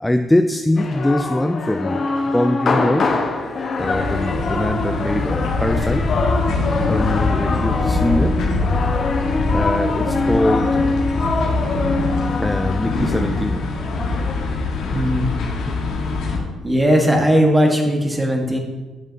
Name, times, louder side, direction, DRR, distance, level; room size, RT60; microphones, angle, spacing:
voice 1, 0.0-2.1 2.3-3.1 3.7-6.1 6.9-8.5 9.5-11.0 12.4-13.7, left 1 dB, 10° left, 7 dB, 0.4 m, -22 dB
sound 1, 0.8-14.6, left 3 dB, 50° left, 1.2 m, -24 dB
sound 2, 3.8-16.4, left 3 dB, 80° left, 1.7 m, -23 dB
voice 2, 14.9-15.3 16.6-18.6, equal, 10° right, 1 dB, 1.6 m, -17 dB
10.5 x 7.3 x 2.8 m, 1.2 s
cardioid pair, 90°, 0 cm